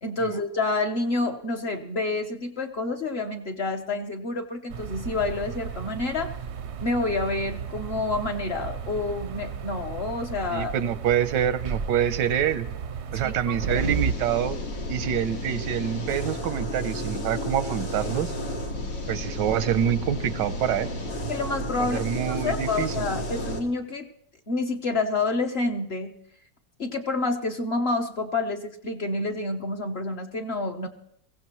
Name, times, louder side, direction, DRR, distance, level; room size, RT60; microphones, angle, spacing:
voice 1, 0.0-6.3 6.8-10.7 13.2-14.0 21.3-24.1 24.5-26.1 26.8-30.9, left 3 dB, 40° left, 4 dB, 1.1 m, -28 dB
sound 1, 4.7-14.1, right 6 dB, 60° right, 0.7 m, -34 dB
voice 2, 10.5-12.7 13.1-14.6 14.9-18.3 19.1-20.9 21.8-23.1, right 9 dB, 90° right, 13 dB, 1.5 m, -26 dB
sound 2, 13.6-23.6, equal, 90° left, 2.9 m, -32 dB
22.5 x 16.0 x 3.1 m, 0.73 s
omnidirectional pair, 1.9 m